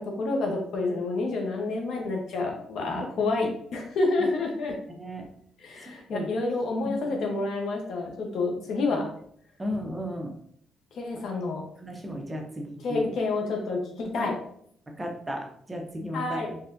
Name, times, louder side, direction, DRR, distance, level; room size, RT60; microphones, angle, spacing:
voice 1, 0.0-4.7 5.6-9.1 11.0-11.6 12.8-14.3 16.1-16.5, left 3 dB, 70° left, 2 dB, 0.9 m, -29 dB
voice 2, 2.9-3.5 4.9-5.3 5.8-6.3 6.8-7.4 8.9-9.0 9.6-10.3 11.8-13.0 14.2-14.3 14.9-16.6, equal, 20° right, 1 dB, 0.8 m, -35 dB
4.1 x 3.3 x 2.6 m, 0.65 s
cardioid pair, 90°, 0 cm